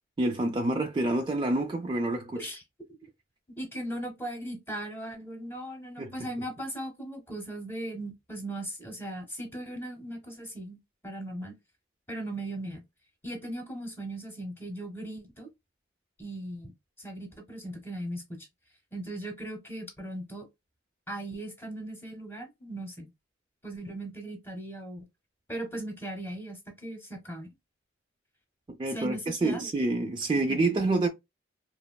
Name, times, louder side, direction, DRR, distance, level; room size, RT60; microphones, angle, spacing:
voice 1, 0.2-2.5 6.0-6.1 28.8-31.1, right 2 dB, 25° right, 0.3 m, -27 dB
voice 2, 3.6-11.5 12.1-12.8 13.2-15.5 16.2-16.7 17.0-18.5 18.9-20.4 21.1-23.1 23.6-25.1 25.5-27.5 28.9-29.6 30.5-30.6, right 1 dB, 10° left, 0.8 m, -38 dB
3.1 x 2.3 x 2.2 m
head